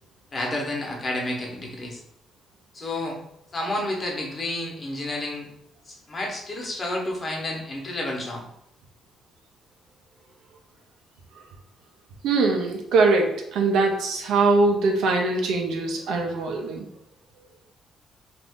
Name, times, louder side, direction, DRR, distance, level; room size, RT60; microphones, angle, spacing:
voice 1, 0.3-2.0 2.7-3.2 3.5-5.5 5.8-8.5, left 1 dB, 35° left, -1 dB, 1.0 m, -30 dB
voice 2, 12.2-16.9, right 3 dB, 85° right, 2 dB, 0.6 m, -22 dB
2.6 x 2.4 x 3.5 m, 0.80 s
cardioid pair, 90°, 0 cm